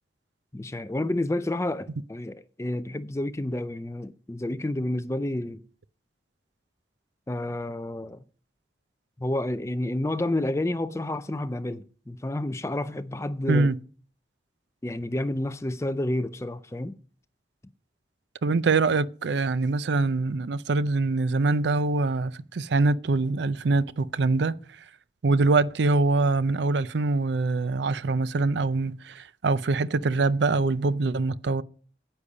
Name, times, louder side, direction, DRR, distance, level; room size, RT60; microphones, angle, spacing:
voice 1, 0.5-5.6 7.3-8.2 9.2-13.8 14.8-17.0, left 1 dB, 15° left, 0.4 m, -30 dB
voice 2, 18.4-24.6 25.2-31.6, right 3 dB, 75° right, 0.5 m, -24 dB
9.9 x 8.4 x 5.3 m
head